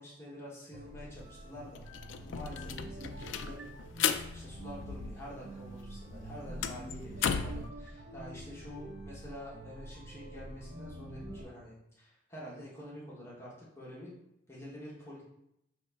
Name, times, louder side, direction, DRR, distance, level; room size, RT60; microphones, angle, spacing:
voice 1, 0.0-1.8 2.2-3.6 4.3-14.1 14.5-15.2, left 1 dB, 15° left, -6 dB, 1.0 m, -47 dB
sound 1, 0.7-11.4, right 1 dB, 60° right, 0.9 m, -46 dB
sound 2, 1.2-1.3 1.6-5.5 5.8-7.7, left 8 dB, 80° left, 0.3 m, -35 dB
5.4 x 2.9 x 3.4 m, 0.81 s
head